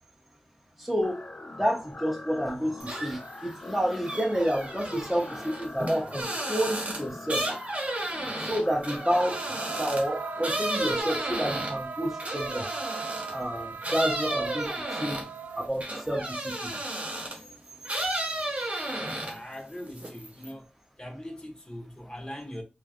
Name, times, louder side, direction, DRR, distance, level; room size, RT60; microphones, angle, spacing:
voice 1, 0.8-1.2 1.6-7.4 8.4-9.4 9.8-12.7 13.3-15.2 15.6-16.7, equal, 5° right, 0.7 m, -29 dB
sound 1, 1.0-11.0, left 2 dB, 45° left, 0.4 m, -43 dB
sound 2, 2.8-3.3 3.7-13.4 13.8-17.5 17.8-19.5 19.9-20.5, right 1 dB, 45° right, 0.9 m, -33 dB
sound 3, 9.0-15.7, right 5 dB, 80° right, 0.3 m, -38 dB
voice 2, 18.9-20.7 21.0-22.6, equal, 25° left, 0.9 m, -41 dB
3.1 x 2.4 x 2.4 m
wide cardioid pair, 60°, 3 cm